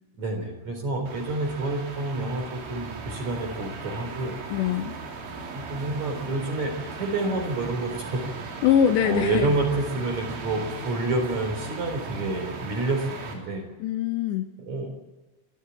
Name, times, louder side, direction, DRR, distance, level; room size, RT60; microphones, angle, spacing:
voice 1, 0.2-4.4 5.5-6.7 7.0-8.2 9.0-13.6 14.6-14.9, right 2 dB, 40° right, 4 dB, 4.7 m, -28 dB
sound 1, 1.1-13.3, right 4 dB, 75° right, 5.7 m, -37 dB
voice 2, 4.5-4.9 8.6-9.6 13.8-14.5, left 9 dB, 80° left, 7 dB, 2.8 m, -23 dB
25.5 x 13.0 x 8.7 m, 1.2 s
omnidirectional pair, 5.7 m